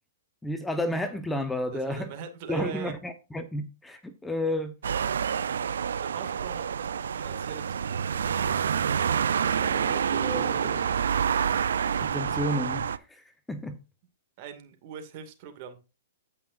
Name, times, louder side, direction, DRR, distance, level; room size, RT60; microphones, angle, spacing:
voice 1, 0.4-2.1 2.5-4.7 9.6-10.8 12.0-13.8, left 1 dB, 5° left, 1.0 m, -32 dB
voice 2, 1.7-3.0 6.0-8.1 14.4-15.8, right 7 dB, 45° right, 2.3 m, -41 dB
sound 1, 4.8-13.0, right 7 dB, 80° right, 0.5 m, -27 dB
15.5 x 5.7 x 2.6 m
hypercardioid pair, 125°, 0 cm